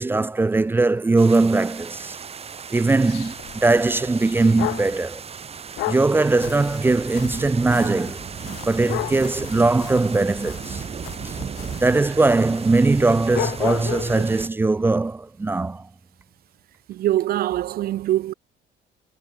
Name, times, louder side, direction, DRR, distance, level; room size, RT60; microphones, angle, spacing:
voice 1, 0.0-2.2 2.7-5.2 5.9-8.2 8.7-10.8 11.2-11.3 11.8-15.8, right 3 dB, 15° right, 0.4 m, -20 dB
sound 1, 1.2-14.5, right 6 dB, 35° right, 5.3 m, -36 dB
sound 2, 2.9-5.0 5.8-14.3, left 20 dB, 90° left, 1.2 m, -34 dB
voice 2, 16.9-18.3, right 13 dB, 65° right, 0.9 m, -23 dB
cardioid pair, 110°, 17 cm